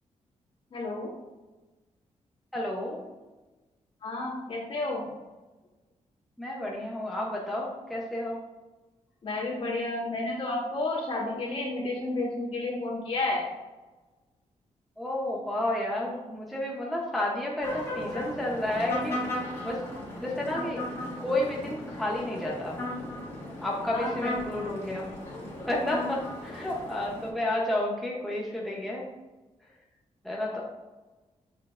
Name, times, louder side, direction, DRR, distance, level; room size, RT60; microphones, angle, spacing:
voice 1, 0.7-1.1 4.0-5.1 9.2-13.5 23.9-24.1 30.5-30.6, left 2 dB, 45° left, -5 dB, 1.9 m, -31 dB
voice 2, 2.5-3.0 6.4-8.4 15.0-19.8 20.2-20.8 21.2-22.8 23.6-25.1 25.7-29.1 30.2-30.6, left 1 dB, ahead, -3 dB, 0.7 m, -31 dB
sound 1, 17.6-27.3, left 1 dB, 20° left, 1.8 m, -36 dB
6.4 x 6.3 x 2.4 m, 1.2 s
wide cardioid pair, 170°, 12 cm